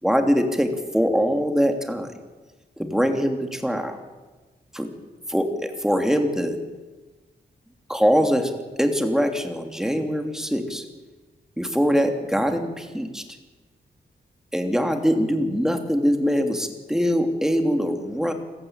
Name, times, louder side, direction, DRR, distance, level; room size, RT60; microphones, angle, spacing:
voice 1, 0.0-2.1 2.8-4.0 4.7-4.9 5.3-6.6 7.9-10.8 11.6-13.2 14.5-18.3, equal, 5° right, 5 dB, 3.0 m, -23 dB
26.5 x 15.0 x 9.0 m, 1.2 s
wide cardioid pair, 100°, 18 cm